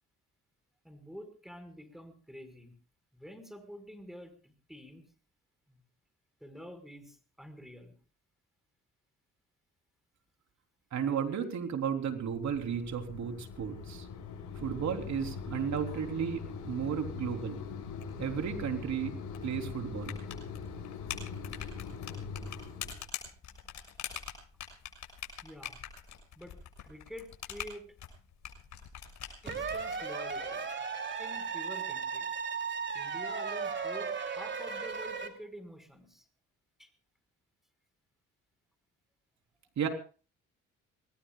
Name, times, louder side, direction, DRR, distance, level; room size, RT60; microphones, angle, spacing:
voice 1, 0.8-2.7 3.1-5.0 6.4-8.0 25.4-25.8 26.3-26.5 26.8-27.9 29.4-30.6 31.2-32.3 32.9-36.3 36.8-36.9, equal, ahead, 8 dB, 5.1 m, -48 dB
voice 2, 10.9-14.1 14.6-17.6 18.2-19.1 19.4-20.2 39.8-39.9, right 7 dB, 65° right, 4 dB, 3.7 m, -34 dB
Mechanisms, 12.0-23.0, left 5 dB, 85° left, 7.4 m, -42 dB
sound 1, 20.0-30.0, left 9 dB, 70° left, 6.9 m, -44 dB
sound 2, 29.5-35.3, right 5 dB, 40° right, 3.1 m, -36 dB
26.5 x 20.0 x 2.4 m, 0.38 s
cardioid pair, 90°, 30 cm